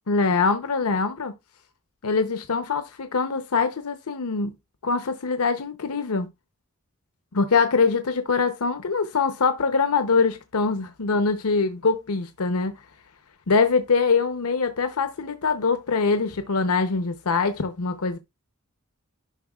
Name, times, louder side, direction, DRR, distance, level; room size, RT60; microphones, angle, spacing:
voice 1, 0.1-1.4 2.0-4.5 4.8-6.3 7.3-12.7 13.5-18.2, left 4 dB, 85° left, 0.8 m, -23 dB
11.0 x 5.5 x 2.3 m
head